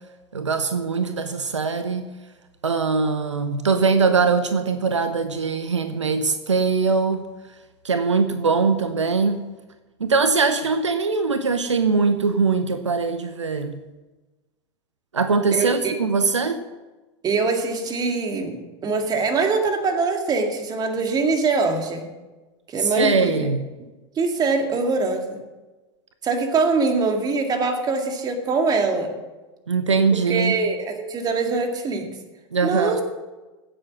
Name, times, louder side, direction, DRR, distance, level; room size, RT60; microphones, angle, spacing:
voice 1, 0.3-2.1 2.6-7.3 7.8-9.4 10.0-13.8 15.1-16.6 22.8-23.7 29.7-30.5 32.5-33.0, right 4 dB, 80° right, 10 dB, 0.9 m, -21 dB
voice 2, 15.5-16.0 17.2-18.6 18.8-22.1 22.7-23.5 24.2-25.4 26.2-29.1 30.3-32.1 32.6-33.0, right 4 dB, 25° right, 4 dB, 2.2 m, -23 dB
16.0 x 7.8 x 6.2 m, 1.2 s
figure-of-eight pair, 90°, 15 cm